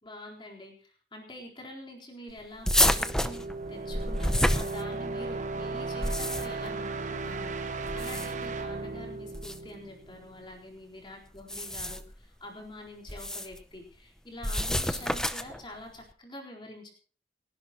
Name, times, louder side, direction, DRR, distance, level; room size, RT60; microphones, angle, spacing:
voice 1, 0.0-16.9, left 1 dB, 25° left, -1 dB, 4.2 m, -46 dB
sound 1, 2.6-5.3 5.8-6.7 7.8-8.5 9.3-9.6 11.4-12.1 13.1-13.6 14.4-15.6, left 1 dB, 5° left, 0.6 m, -28 dB
sound 2, 2.7-10.4, right 3 dB, 40° right, 1.1 m, -36 dB
30.0 x 11.0 x 3.1 m, 0.42 s
head